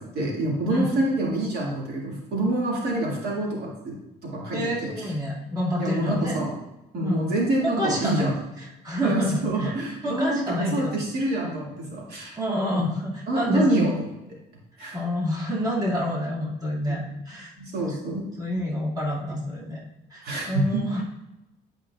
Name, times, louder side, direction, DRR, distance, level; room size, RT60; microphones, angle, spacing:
voice 1, 0.0-4.0 4.2-4.9 5.8-6.6 6.9-8.3 9.0-12.4 12.7-12.9 13.3-14.1 14.8-15.0 16.9-17.0 17.6-18.3 20.2-21.0, right 1 dB, 70° right, -3 dB, 2.1 m, -27 dB
voice 2, 4.5-6.4 7.0-7.3 7.6-9.7 10.0-10.9 12.4-14.0 14.9-17.5 18.4-19.8 20.1-21.0, equal, 20° right, -4 dB, 2.1 m, -28 dB
10.5 x 5.2 x 2.4 m, 0.95 s
cardioid pair, 110°, 17 cm